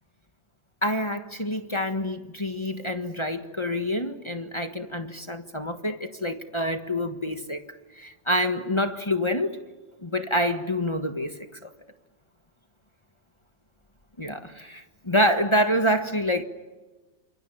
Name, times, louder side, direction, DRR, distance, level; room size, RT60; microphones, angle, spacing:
voice 1, 0.8-7.6 8.0-9.6 10.0-11.3 11.6-11.7 14.2-16.4, equal, 20° left, 1.4 m, -27 dB
29.0 x 27.0 x 7.3 m
omnidirectional pair, 1.9 m